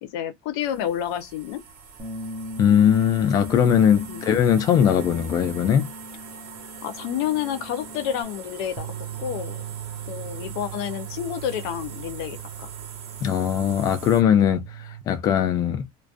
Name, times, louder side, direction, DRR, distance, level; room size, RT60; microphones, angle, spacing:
voice 1, 0.0-1.6 4.1-4.2 6.8-8.9 9.2-9.6 10.1-12.7, left 10 dB, 80° left, 0.6 m, -29 dB
sound 1, 0.6-14.2, right 6 dB, 70° right, 0.8 m, -43 dB
Bass guitar, 2.0-8.2, left 1 dB, 10° right, 0.7 m, -39 dB
voice 2, 2.6-5.9 13.2-14.6 15.1-15.8, left 9 dB, 30° left, 0.4 m, -20 dB
sound 2, 8.8-15.0, right 12 dB, 45° right, 0.4 m, -38 dB
2.3 x 2.2 x 2.4 m
cardioid pair, 180°, 13 cm